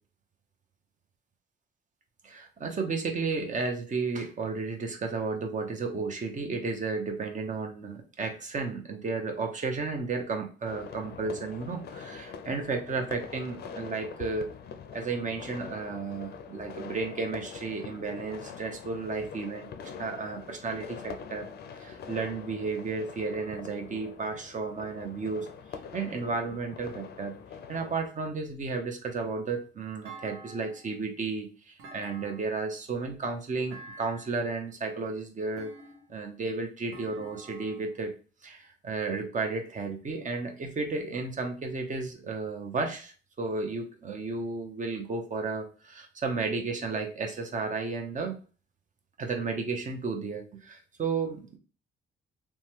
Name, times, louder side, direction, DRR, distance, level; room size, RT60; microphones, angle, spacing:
voice 1, 2.2-14.5 14.9-19.7 20.0-21.5 21.7-27.4 27.7-35.7 36.1-38.1 38.4-48.4 49.2-51.6, right 4 dB, 40° right, 4 dB, 0.7 m, -33 dB
sound 1, 10.7-28.0, left 6 dB, 55° left, 0.4 m, -44 dB
Thump thud, 30.0-31.0 31.8-32.7 33.7-34.5 35.6-36.3 36.9-37.9, right 3 dB, 85° right, 0.8 m, -48 dB
3.0 x 2.2 x 2.9 m, 0.37 s
cardioid pair, 90°, 20 cm